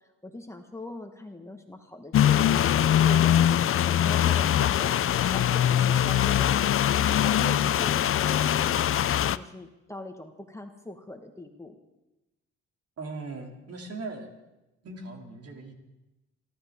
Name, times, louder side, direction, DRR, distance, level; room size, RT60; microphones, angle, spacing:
voice 1, 0.2-6.9 7.2-11.8, left 1 dB, 10° left, 4 dB, 1.4 m, -42 dB
sound 1, 2.1-9.4, left 10 dB, 45° left, 0.5 m, -22 dB
voice 2, 13.0-14.3 14.8-15.8, right 3 dB, 55° right, 2 dB, 2.8 m, -39 dB
27.5 x 12.5 x 3.6 m, 1.0 s
cardioid pair, 90°, 30 cm